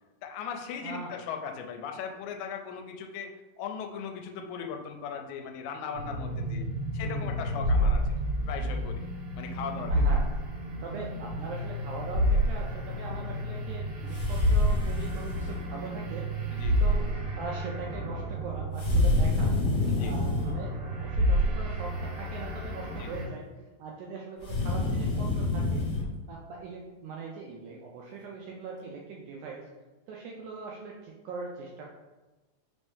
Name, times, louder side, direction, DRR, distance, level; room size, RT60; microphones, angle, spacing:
voice 1, 0.2-6.6 6.9-8.0 8.5-9.1 9.4-9.9 16.5-16.8 19.9-20.1 23.0-23.1, left 6 dB, 85° left, 4 dB, 2.2 m, -38 dB
voice 2, 0.8-1.2 7.0-7.7 9.9-10.2 10.8-16.5 16.8-17.1 17.4-19.6 20.0-23.5 23.8-25.9 26.3-29.7 30.1-31.8, right 4 dB, 80° right, -2 dB, 1.8 m, -41 dB
sound 1, 5.9-23.3, equal, 50° right, 2.0 m, -29 dB
sound 2, 14.1-15.6 18.8-20.6 24.4-26.0, left 3 dB, 45° left, 1.6 m, -29 dB
5.2 x 2.6 x 3.5 m, 1.1 s
omnidirectional pair, 4.0 m